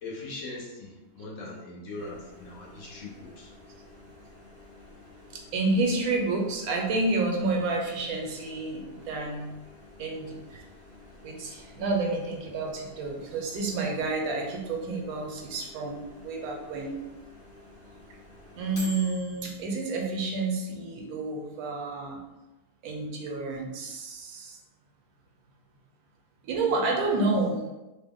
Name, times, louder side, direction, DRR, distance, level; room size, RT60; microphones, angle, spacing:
voice 1, 0.0-3.5, left 2 dB, 65° left, -3 dB, 1.0 m, -40 dB
Microwave oven, 2.0-19.7, left 1 dB, 40° left, 0.9 m, -50 dB
voice 2, 5.3-9.5 10.0-10.6 11.2-17.0 18.6-22.2 22.8-24.6 26.4-27.6, right 3 dB, 75° right, 1 dB, 1.1 m, -29 dB
3.0 x 2.1 x 3.5 m, 1.0 s
omnidirectional pair, 1.6 m